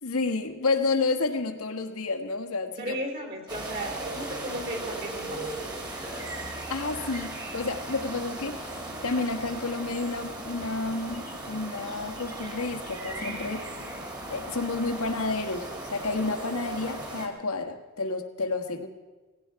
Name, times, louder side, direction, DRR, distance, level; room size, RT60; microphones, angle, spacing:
voice 1, 0.0-3.0 6.7-8.7 9.0-13.7 14.3-18.9, left 3 dB, 80° left, 5 dB, 1.4 m, -30 dB
voice 2, 2.8-5.5, right 1 dB, 45° right, 4 dB, 3.1 m, -35 dB
sound 1, 3.5-17.3, right 1 dB, 20° right, 2.0 m, -37 dB
18.5 x 16.5 x 4.7 m, 1.3 s
head